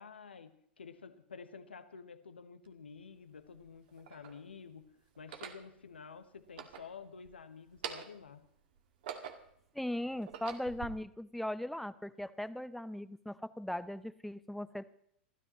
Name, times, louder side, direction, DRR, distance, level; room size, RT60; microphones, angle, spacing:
voice 1, 0.0-4.8 5.2-8.4, left 5 dB, 85° left, 10 dB, 1.3 m, -50 dB
sound 1, 2.7-2.8 3.6-4.4 5.2-5.7 6.4-7.3 7.7-8.3 8.8-9.6 10.1-10.9, right 8 dB, 60° right, 2.0 m, -45 dB
voice 2, 9.7-14.9, left 1 dB, ahead, 14 dB, 0.8 m, -39 dB
28.5 x 13.5 x 3.1 m, 0.67 s
figure-of-eight pair, 95°, 6 cm